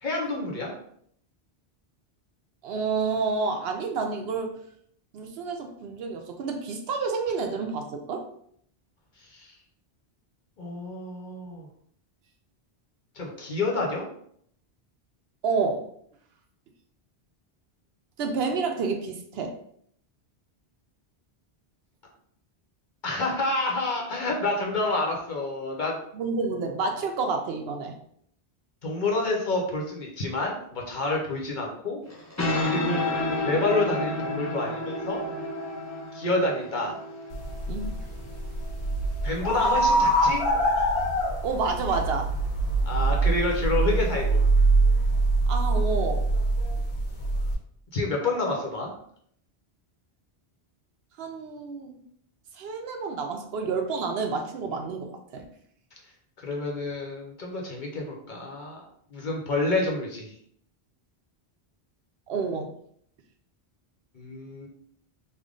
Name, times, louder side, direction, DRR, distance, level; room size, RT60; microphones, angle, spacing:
voice 1, 0.0-0.7 9.2-9.5 10.6-11.7 13.1-14.1 23.0-26.0 28.8-32.0 32.6-33.0 33.4-35.2 36.1-37.0 39.2-40.4 42.9-44.4 47.9-48.9 56.4-58.8 59.1-60.3 64.1-64.7, left 2 dB, 50° left, -1 dB, 0.8 m, -28 dB
voice 2, 2.6-4.6 5.1-8.3 15.4-15.8 18.2-19.6 26.1-27.9 37.7-37.9 41.4-42.3 45.5-46.2 51.2-52.0 52.5-55.4 62.3-62.7, right 4 dB, 70° right, 4 dB, 0.8 m, -29 dB
sound 1, 32.1-39.3, left 1 dB, 25° left, 0.4 m, -31 dB
sound 2, 37.3-47.5, right 2 dB, 85° left, 1.2 m, -24 dB
3.4 x 2.2 x 3.7 m, 0.65 s
omnidirectional pair, 1.1 m